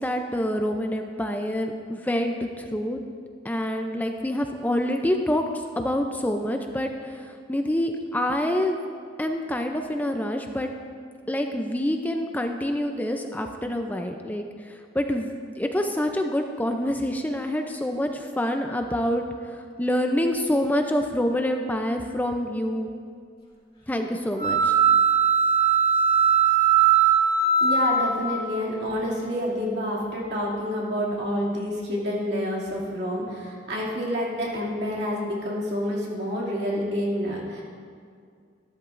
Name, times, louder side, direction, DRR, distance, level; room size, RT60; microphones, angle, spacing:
voice 1, 0.0-3.0 3.4-5.4 5.8-6.9 7.5-8.8 9.2-10.7 11.3-14.4 14.9-19.2 19.8-22.9 23.9-24.7, left 1 dB, 10° left, 4 dB, 0.4 m, -26 dB
sound 1, 24.4-28.5, right 6 dB, 30° left, 2.5 m, -20 dB
voice 2, 27.6-37.6, equal, 65° right, -4 dB, 2.5 m, -28 dB
13.5 x 12.5 x 2.5 m, 2.2 s
head